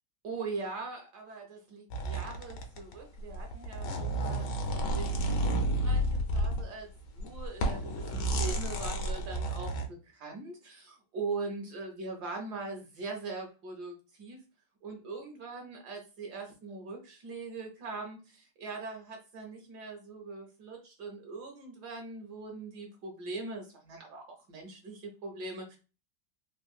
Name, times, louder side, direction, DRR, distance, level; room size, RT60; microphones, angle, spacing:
voice 1, 0.2-14.4 14.8-25.8, right 3 dB, 65° right, 2 dB, 1.1 m, -41 dB
sound 1, 1.9-2.9 3.2-6.6 7.1-9.9, right 1 dB, 70° left, 1.2 m, -31 dB
3.6 x 2.1 x 2.3 m, 0.32 s
omnidirectional pair, 2.1 m